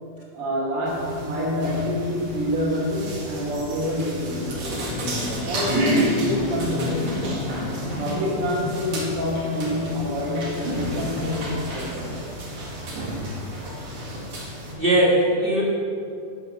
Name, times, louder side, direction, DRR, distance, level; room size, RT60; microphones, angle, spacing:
voice 1, 0.3-7.3 8.0-12.2, left 1 dB, 70° right, -12 dB, 4.1 m, -27 dB
sound 1, 0.9-14.7, right 1 dB, 50° right, 2.7 m, -30 dB
sound 2, 4.9-11.5, left 6 dB, 70° left, 1.8 m, -34 dB
voice 2, 14.8-15.6, right 1 dB, 35° right, -4 dB, 0.9 m, -20 dB
9.7 x 8.0 x 6.5 m, 2.5 s
omnidirectional pair, 3.6 m